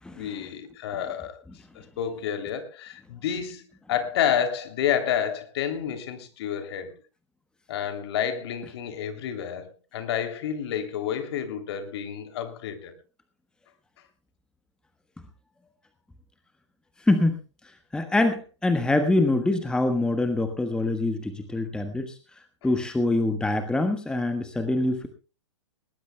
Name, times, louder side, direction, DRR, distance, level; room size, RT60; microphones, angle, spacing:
voice 1, 0.1-1.4 1.7-6.9 7.7-12.9, left 9 dB, 55° left, 3.1 m, -29 dB
voice 2, 17.0-17.4 17.9-25.1, left 2 dB, 5° left, 1.3 m, -25 dB
20.5 x 19.0 x 2.3 m
hypercardioid pair, 110°, 16 cm